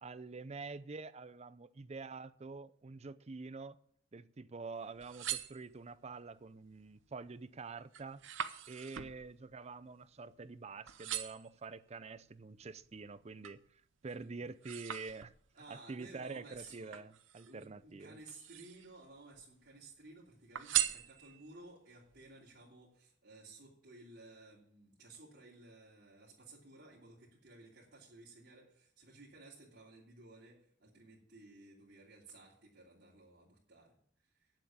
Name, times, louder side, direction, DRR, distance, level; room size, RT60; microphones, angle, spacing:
voice 1, 0.0-3.8 4.1-8.2 8.7-15.3 15.7-18.2, right 4 dB, 35° right, 0.5 m, -47 dB
sound 1, 4.8-6.1 6.7-7.1 7.5-10.6 10.9-11.6 12.2-13.7 14.1-15.6 16.5-17.7 18.2-19.0 19.3-20.1 20.5-21.6 22.1-22.2, right 11 dB, 80° right, 0.8 m, -41 dB
voice 2, 15.5-17.0 17.4-34.5, right 2 dB, 60° right, 3.1 m, -56 dB
9.5 x 7.6 x 8.7 m
head